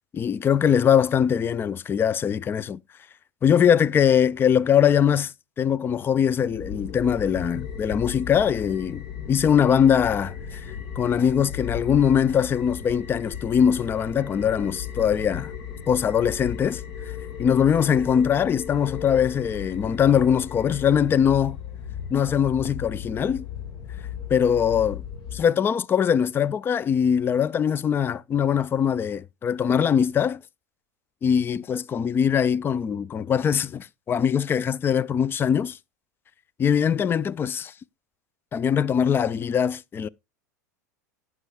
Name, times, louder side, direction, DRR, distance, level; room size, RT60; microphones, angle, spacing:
voice 1, 0.1-2.8 3.4-15.5 15.9-16.8 17.4-21.6 22.1-23.5 24.3-25.0 25.3-30.4 31.2-35.8 36.6-37.7 38.5-40.1, left 8 dB, 25° left, 0.4 m, -22 dB
sound 1, 6.4-25.4, left 8 dB, 50° left, 1.4 m, -36 dB
17.0 x 6.1 x 2.2 m
hypercardioid pair, 85°, 10 cm